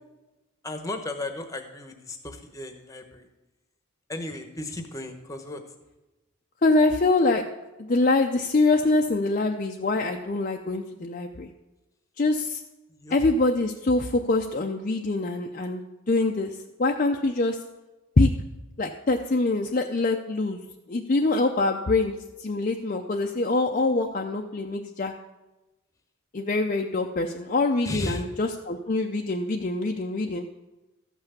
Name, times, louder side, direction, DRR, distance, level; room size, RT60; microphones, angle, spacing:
voice 1, 0.6-3.3 4.1-5.6 12.9-13.2 27.8-28.3, left 2 dB, 15° left, 6 dB, 1.0 m, -35 dB
voice 2, 6.6-7.4 7.8-11.5 12.2-12.6 13.1-16.5 16.8-17.6 18.2-18.3 18.8-20.6 20.9-22.1 22.4-25.1 26.3-30.5, left 2 dB, 35° left, 2 dB, 0.5 m, -24 dB
13.5 x 5.8 x 6.7 m, 1.0 s
head